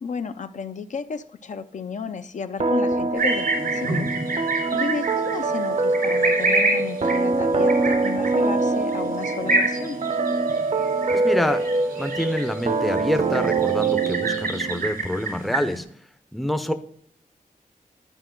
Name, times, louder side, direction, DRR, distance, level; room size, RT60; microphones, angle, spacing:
voice 1, 0.0-4.1 4.7-10.0, left 5 dB, 55° left, 9 dB, 0.5 m, -33 dB
sound 1, 2.6-15.0, right 3 dB, 50° right, 0.7 m, -24 dB
sound 2, 3.2-15.8, right 2 dB, 90° right, 3.5 m, -28 dB
voice 2, 11.1-11.6 12.0-15.9 16.3-16.7, left 1 dB, ahead, 8 dB, 0.6 m, -26 dB
11.5 x 5.3 x 3.7 m, 0.63 s
wide cardioid pair, 180°, 15 cm